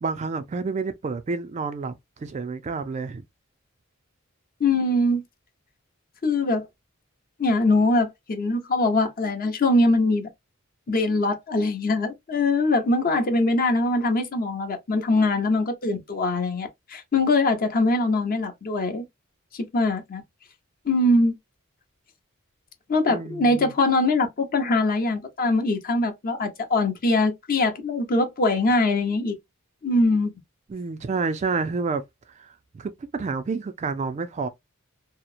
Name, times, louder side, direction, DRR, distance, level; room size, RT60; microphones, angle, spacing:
voice 1, 0.0-3.2 23.1-23.7 30.7-32.0 32.4-34.5, right 4 dB, 35° right, 0.3 m, -29 dB
voice 2, 4.6-5.2 6.2-6.6 7.4-10.3 10.9-19.0 19.5-20.2 20.9-21.3 22.9-29.3 29.8-30.3, left 2 dB, 45° left, 0.6 m, -22 dB
2.8 x 2.0 x 2.4 m
head